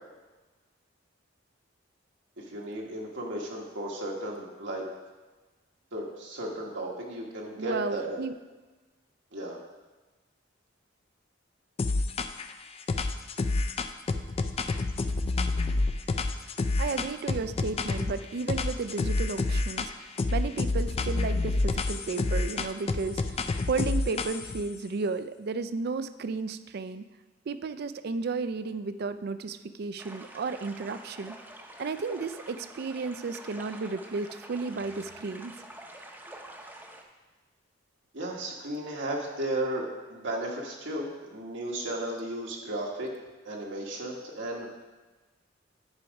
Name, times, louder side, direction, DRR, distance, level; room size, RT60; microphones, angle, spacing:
voice 1, 2.4-4.8 5.9-8.2 9.3-9.6 38.1-43.1 43.4-44.7, right 1 dB, 75° right, -2 dB, 1.3 m, -34 dB
voice 2, 7.6-8.3 16.8-27.0 27.5-31.4 31.8-35.5, right 4 dB, 55° right, 12 dB, 0.4 m, -33 dB
sound 1, 11.8-12.5 12.9-18.1 18.5-19.9 20.2-24.6, left 3 dB, 30° left, 0.4 m, -28 dB
sound 2, 30.0-37.0, right 1 dB, 10° right, 0.7 m, -47 dB
9.7 x 4.8 x 5.2 m, 1.2 s
head